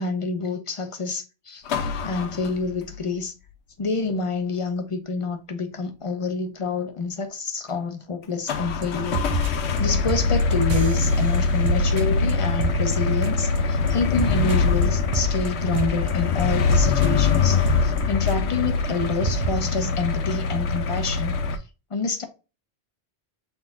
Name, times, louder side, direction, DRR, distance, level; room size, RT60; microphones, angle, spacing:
voice 1, 0.0-3.3 3.8-9.3 9.8-21.3 21.9-22.2, left 4 dB, 35° left, 0.8 m, -28 dB
sound 1, 1.7-3.0 8.5-21.6, left 4 dB, 90° left, 1.0 m, -23 dB
sound 2, 8.8-8.9 9.1-9.8 10.1-13.6 13.9-18.7 18.9-19.0 19.2-19.5, right 5 dB, 45° right, 0.7 m, -30 dB
5.8 x 3.9 x 2.2 m
omnidirectional pair, 1.1 m